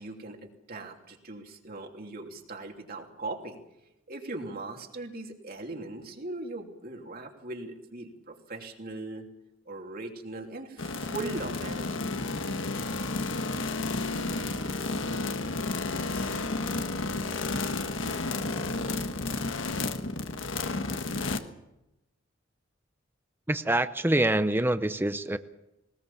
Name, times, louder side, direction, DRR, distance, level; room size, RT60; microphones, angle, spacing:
voice 1, 0.0-3.6 4.1-9.2 9.6-12.1 18.0-18.1, right 2 dB, 50° right, 2 dB, 2.9 m, -39 dB
sound 1, 10.8-21.4, left 3 dB, 70° left, 1.5 m, -31 dB
voice 2, 23.5-25.4, right 1 dB, 10° right, 11 dB, 0.7 m, -25 dB
20.5 x 19.5 x 7.1 m, 0.89 s
head